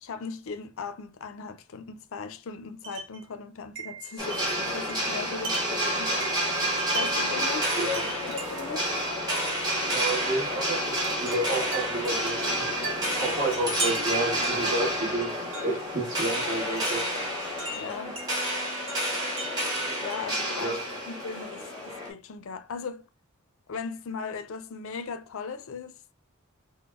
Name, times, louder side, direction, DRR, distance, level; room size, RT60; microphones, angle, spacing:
voice 1, 0.0-6.5 6.9-7.7 8.2-8.9 12.8-13.0 17.7-18.1 20.0-20.8 21.0-23.0 23.7-25.9, left 5 dB, 65° left, 0.5 m, -38 dB
Wind chime, 2.8-3.2 3.8-7.3 7.9-8.8 9.7-9.9 11.0-15.9 16.8-18.3 18.9-20.4, right 3 dB, 60° right, 1.3 m, -39 dB
sound 1, 4.2-22.1, equal, 20° right, 1.4 m, -29 dB
voice 2, 9.9-10.9 11.2-12.6 13.2-17.0 20.6-20.8, right 2 dB, 40° right, 1.5 m, -30 dB
3.9 x 2.1 x 3.5 m
head